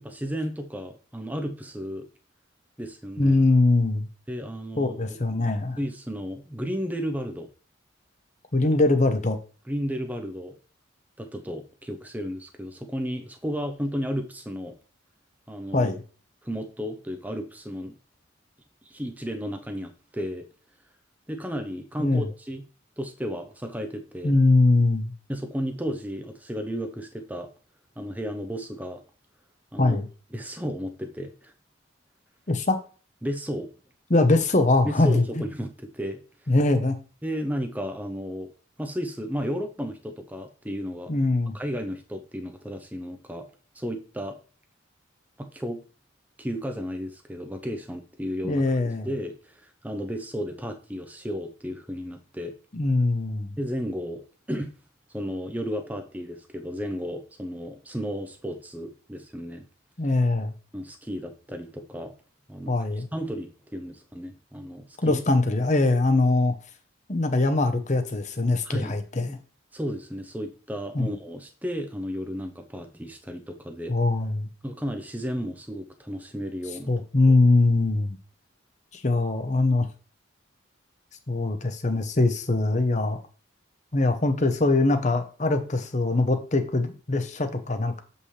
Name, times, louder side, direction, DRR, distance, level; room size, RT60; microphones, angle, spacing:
voice 1, 0.0-2.1 2.8-3.4 4.3-5.2 5.8-7.5 9.7-10.6 11.2-14.8 15.5-15.9 16.4-18.0 18.8-20.5 21.3-22.6 23.0-24.3 25.3-27.5 28.0-29.0 29.7-30.0 30.3-31.5 33.2-33.7 34.8-36.5 37.2-38.5 38.8-41.1 41.5-43.5 43.7-44.4 45.4-45.8 46.4-48.7 49.0-52.5 53.6-54.7 55.1-59.6 60.7-62.1 62.5-62.7 63.1-65.2 65.8-65.9 68.6-69.0 69.7-73.9 74.6-76.9 77.3-77.4, equal, 10° right, 5 dB, 0.7 m, -33 dB
voice 2, 3.2-4.1 4.8-5.8 8.5-9.4 15.7-16.0 22.0-22.3 24.2-25.1 29.8-30.1 32.5-32.8 34.1-35.5 36.5-37.0 41.1-41.6 48.4-49.1 52.7-53.6 60.0-60.5 62.7-63.1 65.0-66.6 67.1-69.4 70.9-71.1 73.9-74.5 76.9-78.2 78.9-79.9 81.3-83.2 83.9-88.0, left 2 dB, 35° left, 7 dB, 0.9 m, -22 dB
7.4 x 5.4 x 3.3 m, 0.38 s
head